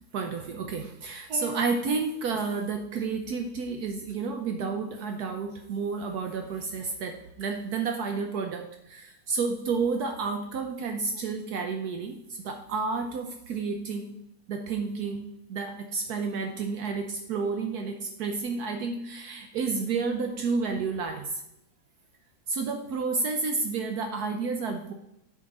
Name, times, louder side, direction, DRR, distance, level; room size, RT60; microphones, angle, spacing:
voice 1, 0.1-14.1 14.5-21.4 22.5-24.9, right 4 dB, 70° right, 5 dB, 1.1 m, -31 dB
9.1 x 5.1 x 4.0 m, 0.79 s
omnidirectional pair, 1.9 m